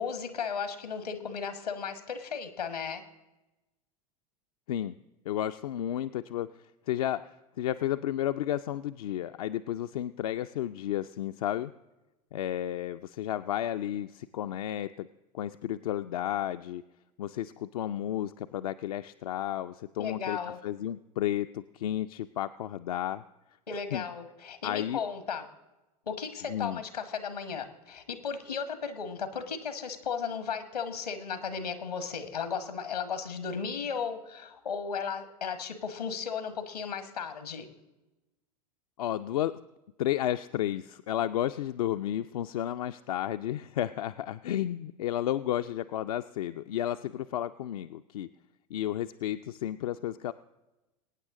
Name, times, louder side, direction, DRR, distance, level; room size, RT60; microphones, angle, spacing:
voice 1, 0.0-3.0 20.0-20.6 23.7-25.4 26.1-37.7, left 6 dB, 85° left, 10 dB, 1.4 m, -35 dB
voice 2, 5.3-6.5 6.9-7.2 7.6-11.7 12.3-15.1 15.3-16.8 17.2-23.2 23.9-24.0 24.6-25.0 26.5-26.8 39.0-39.6 40.0-48.3 48.7-50.3, left 12 dB, 70° left, 8 dB, 0.4 m, -32 dB
23.0 x 9.2 x 3.7 m, 1.0 s
hypercardioid pair, 90°, 20 cm